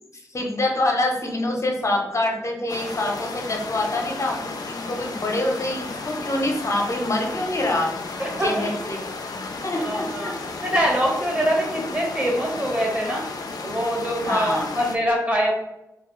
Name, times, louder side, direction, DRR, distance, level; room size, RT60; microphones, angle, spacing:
voice 1, 0.3-7.9 8.4-9.0 9.6-10.4 14.2-14.7, left 1 dB, 45° left, 1 dB, 0.8 m, -25 dB
sound 1, 2.7-15.0, left 3 dB, 65° left, 0.4 m, -33 dB
voice 2, 8.2-8.7 9.8-10.3 10.6-13.3 13.6-15.5, equal, 20° right, -1 dB, 1.1 m, -24 dB
2.3 x 2.3 x 3.0 m, 0.88 s
cardioid pair, 40°, 7 cm